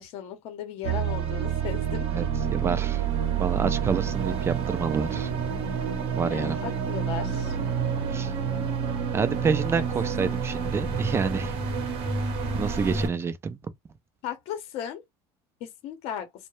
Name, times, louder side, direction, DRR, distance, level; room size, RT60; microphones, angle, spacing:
voice 1, 0.0-2.0 6.3-7.6 9.8-10.3 14.2-15.0 15.6-16.3, left 9 dB, 65° left, 0.7 m, -36 dB
sound 1, 0.8-13.1, right 7 dB, 55° right, 0.8 m, -28 dB
voice 2, 2.1-3.1 3.4-5.3 6.2-6.6 8.1-8.3 9.1-11.6 12.5-13.6, right 5 dB, 20° right, 0.4 m, -28 dB
2.2 x 2.1 x 3.0 m
supercardioid pair, 110°, 11 cm